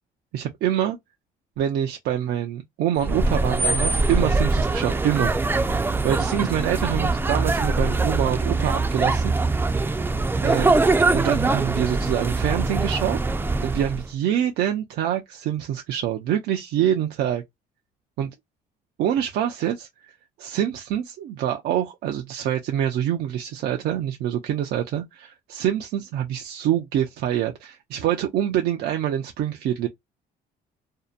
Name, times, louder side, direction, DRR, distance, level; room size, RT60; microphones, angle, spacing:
voice 1, 0.3-1.0 1.6-5.3 6.0-9.3 10.4-10.8 11.1-13.2 13.6-17.4 18.2-18.3 19.0-20.1 20.4-29.9, right 10 dB, 75° right, 0.5 m, -25 dB
sound 1, 3.0-14.1, right 3 dB, 15° right, 0.4 m, -23 dB
2.7 x 2.1 x 2.4 m
cardioid pair, 110°, 17 cm